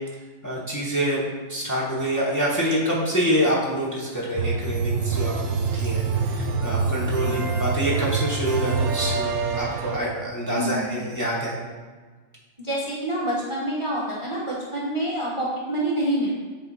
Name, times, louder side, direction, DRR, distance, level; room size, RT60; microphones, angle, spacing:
voice 1, 0.4-11.6, equal, 15° left, -5 dB, 0.9 m, -26 dB
sound 1, 4.4-10.0, right 4 dB, 90° right, 1.0 m, -25 dB
voice 2, 7.2-7.6 10.5-10.8 12.6-16.3, right 1 dB, 30° right, -5 dB, 0.8 m, -27 dB
7.7 x 3.1 x 4.0 m, 1.4 s
omnidirectional pair, 1.3 m